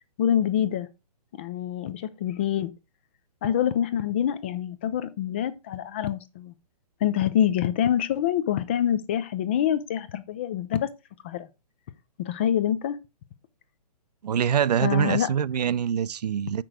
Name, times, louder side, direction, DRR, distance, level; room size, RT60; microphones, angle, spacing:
voice 1, 0.2-0.9 1.4-2.7 3.4-6.5 7.0-10.9 11.2-11.5 12.2-13.0 14.8-15.3, left 10 dB, 15° left, 0.3 m, -26 dB
voice 2, 14.2-16.6, right 8 dB, 75° right, 0.6 m, -24 dB
7.8 x 6.0 x 4.7 m
hypercardioid pair, 160°, 21 cm